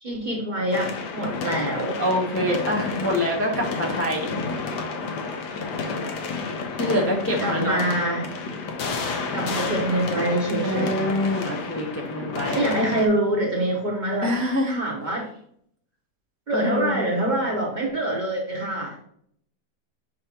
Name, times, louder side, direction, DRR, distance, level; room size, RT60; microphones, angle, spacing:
voice 1, 0.0-2.0 7.4-8.3 9.3-11.2 12.5-15.3 16.5-19.0, right 1 dB, 35° right, -1 dB, 0.9 m, -25 dB
sound 1, 0.7-13.1, left 4 dB, 80° left, 1.4 m, -30 dB
voice 2, 2.0-4.3 6.8-7.8 10.6-12.6 14.2-14.8 16.5-17.0, left 1 dB, 15° left, -1 dB, 0.5 m, -25 dB
6.6 x 5.0 x 2.9 m, 0.66 s
omnidirectional pair, 1.7 m